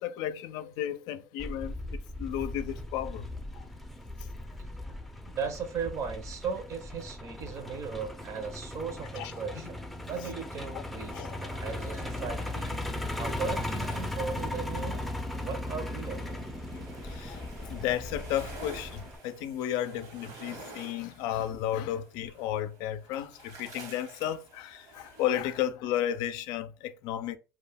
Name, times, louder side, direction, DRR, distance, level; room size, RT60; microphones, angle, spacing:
voice 1, 0.0-1.8 2.2-3.2 9.2-9.3 10.7-10.8 11.1-11.4 16.7-27.4, left 11 dB, 80° left, 0.4 m, -33 dB
Truck, 1.4-19.2, left 1 dB, ahead, 0.5 m, -37 dB
voice 2, 5.3-12.8 13.2-15.1 15.3-16.4, right 5 dB, 50° right, 0.7 m, -37 dB
sound 1, 11.6-25.6, right 3 dB, 65° right, 1.1 m, -50 dB
2.3 x 2.1 x 3.4 m
cardioid pair, 110°, 7 cm